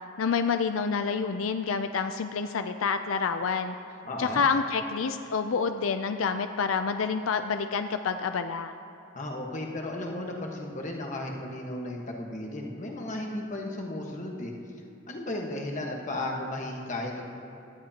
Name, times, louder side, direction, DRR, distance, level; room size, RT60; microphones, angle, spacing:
voice 1, 0.2-3.7 4.2-8.7, left 5 dB, 85° left, 8 dB, 0.4 m, -28 dB
voice 2, 4.0-4.4 9.1-14.5 15.1-17.3, left 1 dB, 40° left, 0 dB, 1.4 m, -34 dB
17.5 x 12.5 x 2.9 m, 3.0 s
head